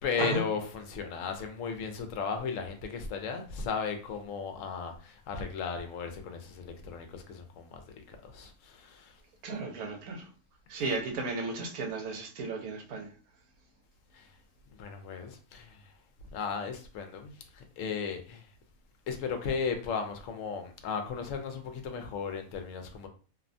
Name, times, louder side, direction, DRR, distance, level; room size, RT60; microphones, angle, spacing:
voice 1, 0.0-9.2 10.8-10.9 14.1-14.3 14.8-15.9 16.3-18.5 19.1-23.1, left 5 dB, 70° left, 0.9 m, -36 dB
voice 2, 9.4-10.3 10.7-13.1, right 3 dB, 80° right, 1.1 m, -34 dB
2.7 x 2.1 x 2.5 m
omnidirectional pair, 1.5 m